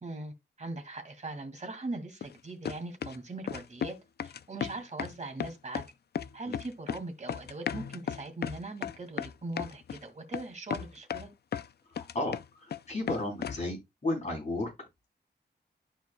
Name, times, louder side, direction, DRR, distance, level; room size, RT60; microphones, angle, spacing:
voice 1, 0.0-4.0 4.2-5.8 6.3-11.3, right 2 dB, 40° right, 2.0 m, -40 dB
sound 1, 2.2-2.3 2.6-3.2 3.5-3.9 4.2-5.1 5.4-5.9 6.2-7.0 7.3-10.0 10.3-10.4 10.7-11.7 12.0-12.8 13.1-13.6, left 8 dB, 60° left, 0.4 m, -35 dB
voice 2, 12.0-14.7, left 2 dB, 40° left, 4.0 m, -34 dB
12.5 x 4.5 x 2.2 m
wide cardioid pair, 115°, 19 cm